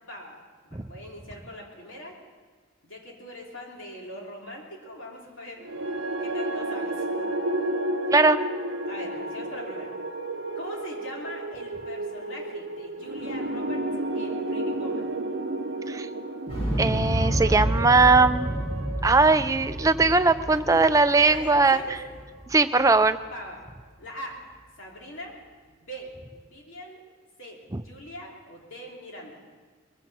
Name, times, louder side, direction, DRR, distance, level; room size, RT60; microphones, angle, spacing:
voice 1, 0.0-2.2 2.8-5.9 6.2-7.4 8.9-9.9 10.5-13.9 14.1-15.1 20.7-20.9 21.2-22.0 23.3-23.6 24.0-24.4 24.8-25.4 25.7-27.0 27.4-29.4, equal, 65° left, -2 dB, 3.2 m, -41 dB
sound 1, 5.6-21.9, right 1 dB, 65° right, 0.7 m, -32 dB
voice 2, 8.1-8.4 15.9-16.1 16.8-18.6 19.0-21.8 22.5-23.2, right 3 dB, 15° right, 10 dB, 0.4 m, -20 dB
Explosion, 16.5-22.5 22.8-22.9, equal, 30° left, 2.6 m, -29 dB
21.0 x 15.5 x 4.2 m, 1.5 s
head